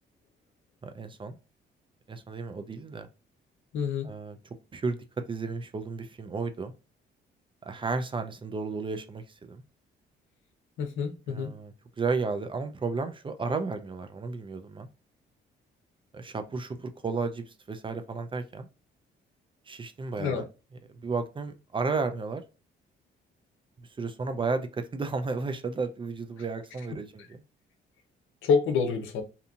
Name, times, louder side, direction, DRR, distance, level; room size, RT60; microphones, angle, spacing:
voice 1, 0.8-1.4 2.1-3.1 4.0-4.4 4.7-5.0 5.3-6.7 7.6-9.6 11.3-14.9 16.1-18.7 19.7-20.5 21.0-22.4 24.0-27.4, right 4 dB, 25° right, 0.4 m, -33 dB
voice 2, 3.7-4.1 10.8-11.5 20.2-20.4 27.2-27.3 28.4-29.2, left 5 dB, 85° left, 0.7 m, -27 dB
2.7 x 2.6 x 2.3 m
cardioid pair, 90°, 20 cm